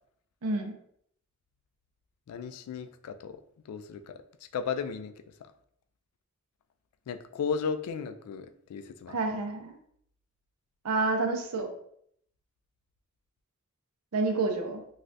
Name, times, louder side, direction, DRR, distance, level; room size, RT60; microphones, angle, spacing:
voice 1, 0.4-0.8 9.1-9.7 10.8-11.7 14.1-14.8, right 3 dB, 85° right, 4 dB, 0.5 m, -29 dB
voice 2, 2.3-4.2 4.5-5.5 7.1-9.2, left 6 dB, 90° left, 11 dB, 0.3 m, -35 dB
3.2 x 2.3 x 2.5 m, 0.68 s
head